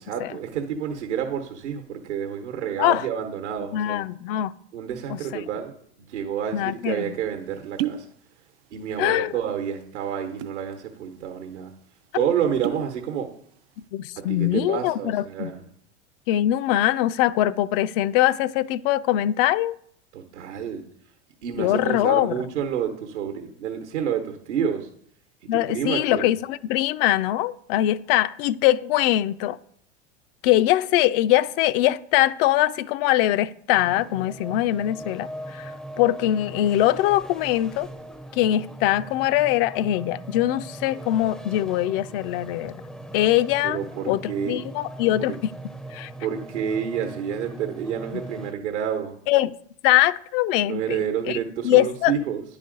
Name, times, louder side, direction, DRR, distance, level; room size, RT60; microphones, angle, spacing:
voice 1, 0.0-4.0 4.7-5.7 6.1-8.1 8.7-11.7 12.1-13.3 14.3-15.6 20.1-20.9 21.4-24.9 25.4-26.3 43.6-44.6 45.3-45.4 46.2-49.2 50.6-52.4, right 8 dB, 75° right, 1.0 m, -29 dB
voice 2, 3.7-4.5 5.1-5.4 6.5-7.1 9.0-9.3 13.9-15.5 16.3-19.7 21.6-22.3 25.5-29.6 30.4-35.7 36.0-37.9 38.3-42.7 43.1-43.8 44.1-45.5 45.9-46.1 49.3-49.5 49.8-51.4 51.6-52.1, left 14 dB, 55° left, 0.4 m, -22 dB
sound 1, 6.7-6.8 7.6-8.1 8.4-9.0 9.3-9.5 10.2-10.7 11.1-11.2 11.5-11.7 12.4-12.9 13.4-13.7, right 12 dB, 55° right, 0.6 m, -32 dB
sound 2, 33.7-48.5, right 1 dB, ahead, 0.5 m, -40 dB
10.0 x 4.1 x 3.8 m
hypercardioid pair, 90°, 35 cm